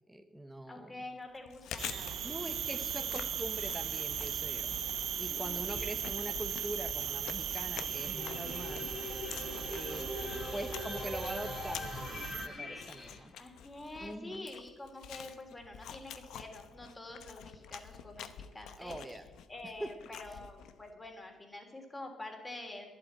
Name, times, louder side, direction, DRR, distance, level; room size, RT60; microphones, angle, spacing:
voice 1, 0.1-0.9 2.2-4.8 5.2-8.9 9.7-10.0 10.5-13.3 14.0-14.5 18.8-19.3 19.8-19.9 20.3-20.4, right 1 dB, 10° right, 6 dB, 0.9 m, -43 dB
voice 2, 0.7-2.2 3.0-3.2 5.3-6.0 9.8-10.6 13.1-19.0 19.5-22.9, left 2 dB, 20° left, 3 dB, 3.1 m, -47 dB
Chewing mastication, 1.3-20.9, left 9 dB, 80° left, 0.8 m, -48 dB
sound 1, 1.8-12.5, right 9 dB, 65° right, 0.5 m, -38 dB
sound 2, 7.7-13.2, left 2 dB, 50° left, 3.5 m, -42 dB
11.5 x 7.8 x 8.9 m, 1.3 s
cardioid pair, 90°, 0 cm